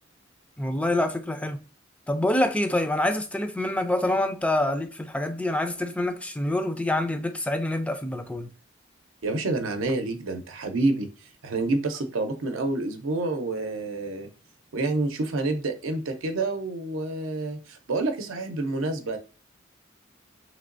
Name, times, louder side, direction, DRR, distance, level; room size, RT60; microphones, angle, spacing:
voice 1, 0.6-1.6 2.1-8.5, left 1 dB, 5° left, 0.4 m, -26 dB
voice 2, 9.2-11.1 11.4-14.3 14.7-19.2, right 2 dB, 90° right, 0.6 m, -28 dB
3.2 x 2.9 x 2.5 m
head